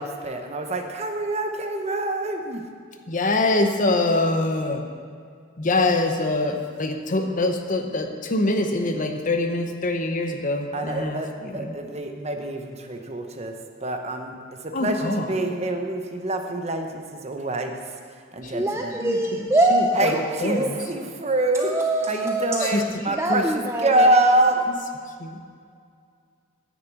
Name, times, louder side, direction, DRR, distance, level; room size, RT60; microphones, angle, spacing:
voice 1, 0.0-2.6 10.7-13.5 13.8-14.3 14.6-17.7 18.3-19.0 19.9-21.7 22.1-23.4 23.8-24.6, right 2 dB, 30° right, 5 dB, 0.9 m, -25 dB
voice 2, 3.1-4.8 5.6-11.7 14.7-15.3 18.4-18.5 19.0-19.2 19.7-20.1 20.4-20.8 22.6-22.8 23.3-23.4 25.2-25.4, left 2 dB, 40° left, 5 dB, 0.9 m, -24 dB
voice 3, 18.5-20.7 21.5-22.8 23.1-24.2, right 1 dB, 15° right, 2 dB, 0.4 m, -24 dB
9.4 x 6.7 x 8.5 m, 2.2 s
head